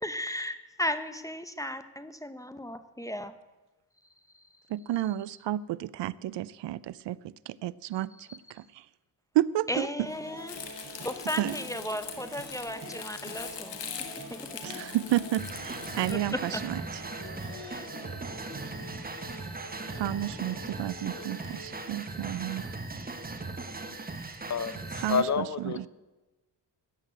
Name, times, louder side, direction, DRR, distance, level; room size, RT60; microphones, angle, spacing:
voice 1, 0.0-3.3 9.7-10.6 11.0-13.8 14.3-14.4 16.1-16.6 17.6-17.8, left 1 dB, 10° left, 11 dB, 0.7 m, -35 dB
voice 2, 4.7-7.2 7.5-8.8 9.3-10.1 11.4-11.6 14.6-16.8 19.9-22.7 25.0-25.9, right 13 dB, 75° right, 19 dB, 0.6 m, -31 dB
sound 1, 10.0-24.8, right 1 dB, 35° right, 5.2 m, -46 dB
Crumpling crinkling, 10.5-16.1, left 8 dB, 75° left, 1.7 m, -42 dB
sound 2, 15.4-25.2, right 3 dB, 20° right, 1.3 m, -39 dB
voice 3, 24.5-25.9, left 6 dB, 40° left, 15 dB, 0.7 m, -29 dB
14.0 x 8.3 x 8.8 m, 1.1 s
wide cardioid pair, 130°, 42 cm